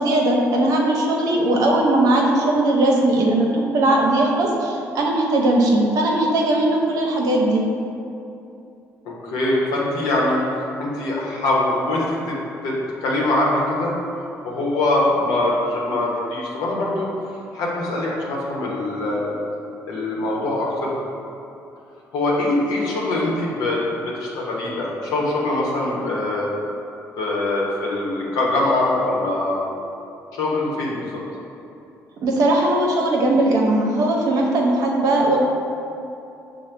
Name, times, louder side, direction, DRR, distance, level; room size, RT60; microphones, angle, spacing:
voice 1, 0.0-7.6 32.2-35.4, right 1 dB, 70° right, -1 dB, 0.7 m, -19 dB
voice 2, 9.0-10.4 10.8-12.4 12.6-13.9 14.4-17.1 17.5-19.4 19.9-20.9 22.1-26.5 27.2-29.7 30.3-31.2, left 2 dB, 80° left, -4 dB, 0.9 m, -23 dB
6.1 x 2.1 x 3.3 m, 2.7 s
supercardioid pair, 65°, 6 cm